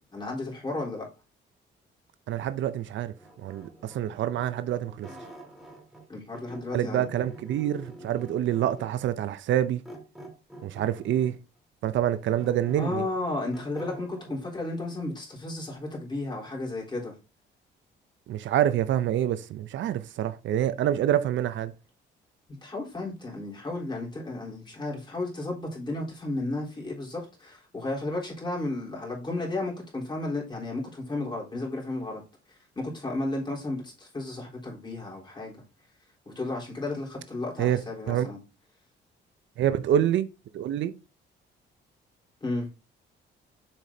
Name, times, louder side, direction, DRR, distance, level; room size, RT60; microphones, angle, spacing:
voice 1, 0.1-1.1 6.1-7.1 12.8-17.1 22.6-32.2 32.8-35.6 36.3-38.4 42.4-42.7, left 2 dB, 25° left, 3.7 m, -33 dB
voice 2, 2.3-3.1 3.4-5.1 6.7-9.8 10.6-11.4 11.8-13.0 18.3-21.7 37.6-37.8 38.1-38.3 39.6-40.3 40.5-40.9, right 11 dB, 70° right, 0.5 m, -26 dB
sound 1, 3.2-6.1 6.3-9.0 9.8-11.4 11.9-14.4, right 1 dB, ahead, 2.2 m, -46 dB
7.4 x 4.9 x 2.8 m
cardioid pair, 90°, 20 cm